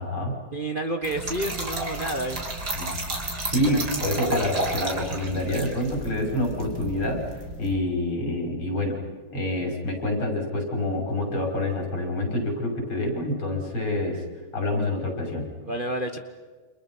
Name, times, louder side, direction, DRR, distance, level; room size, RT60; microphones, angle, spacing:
voice 1, 0.0-0.4 2.8-2.9 3.4-7.3 7.6-9.0 9.3-14.2 14.5-15.5, left 1 dB, 75° left, 1 dB, 6.7 m, -27 dB
voice 2, 0.5-2.5 3.7-3.8 15.6-16.2, right 1 dB, 30° right, 6 dB, 1.2 m, -29 dB
Trickle dribble / Fill (with liquid), 1.0-7.8, right 1 dB, 45° right, 4.1 m, -32 dB
30.0 x 28.0 x 5.6 m, 1.4 s
omnidirectional pair, 2.4 m